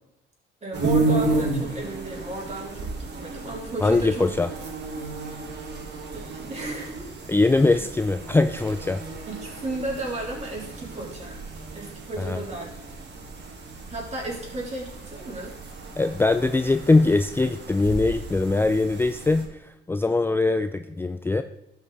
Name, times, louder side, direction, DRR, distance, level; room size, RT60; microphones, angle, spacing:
voice 1, 0.6-4.3 5.3-5.7 6.1-7.1 7.7-7.8 9.3-11.4 11.7-12.7 13.9-15.5, right 2 dB, 35° right, -2 dB, 3.6 m, -34 dB
sound 1, 0.7-19.4, right 2 dB, 60° right, 2.0 m, -32 dB
voice 2, 3.8-4.5 7.3-9.0 12.2-12.4 16.0-21.4, left 3 dB, 10° left, 9 dB, 0.4 m, -22 dB
12.5 x 5.7 x 4.0 m, 0.89 s
cardioid pair, 90°, 20 cm